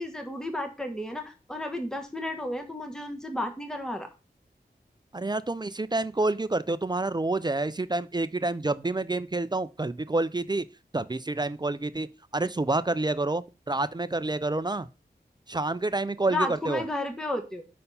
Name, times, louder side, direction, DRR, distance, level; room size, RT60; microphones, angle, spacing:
voice 1, 0.0-4.1 16.3-17.6, left 1 dB, 5° left, 1.2 m, -32 dB
voice 2, 5.1-10.6 10.9-14.9 15.5-16.8, right 2 dB, 25° right, 0.4 m, -28 dB
5.5 x 4.3 x 5.4 m
wide cardioid pair, 60°, 17 cm